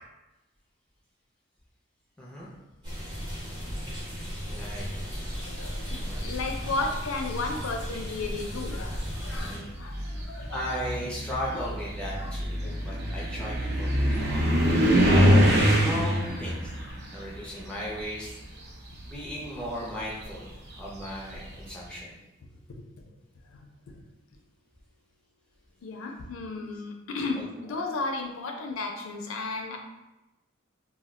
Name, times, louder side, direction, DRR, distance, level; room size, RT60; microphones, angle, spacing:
voice 1, 2.2-2.5 4.5-5.1 5.9-6.3 6.6-6.7 9.4-9.7 10.5-16.7 17.1-18.4 19.0-22.1 27.3-27.5, equal, 5° left, -6 dB, 0.5 m, -37 dB
sound 1, 2.8-9.6, equal, 25° right, 0.8 m, -35 dB
voice 2, 5.5-10.7 12.2-12.3 12.6-13.2 22.7-22.8 23.5-23.6 25.8-29.8, left 3 dB, 80° left, 3 dB, 0.4 m, -34 dB
sound 2, 6.4-7.0 8.0-8.1 8.6-18.5 18.8-21.4, equal, 50° right, 0.5 m, -25 dB
2.3 x 2.1 x 3.6 m, 1.0 s
head